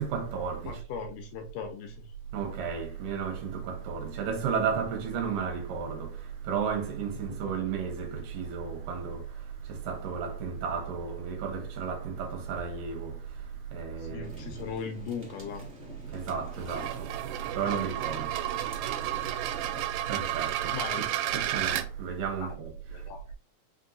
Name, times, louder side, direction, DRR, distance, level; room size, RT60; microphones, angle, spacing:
voice 1, 0.0-0.7 2.3-6.1 6.5-9.2 9.9-13.1 13.7-14.3 16.1-16.9 17.6-18.3 20.1-21.0 21.3-22.7, right 6 dB, 75° right, 2.3 m, -33 dB
voice 2, 0.7-2.1 14.0-15.7 20.7-21.1 22.4-22.6 22.9-23.2, left 6 dB, 85° left, 1.8 m, -38 dB
sound 1, 14.2-19.8, equal, 45° right, 0.7 m, -47 dB
sound 2, 16.5-21.9, right 13 dB, 90° right, 2.4 m, -32 dB
5.4 x 2.9 x 2.5 m
omnidirectional pair, 4.2 m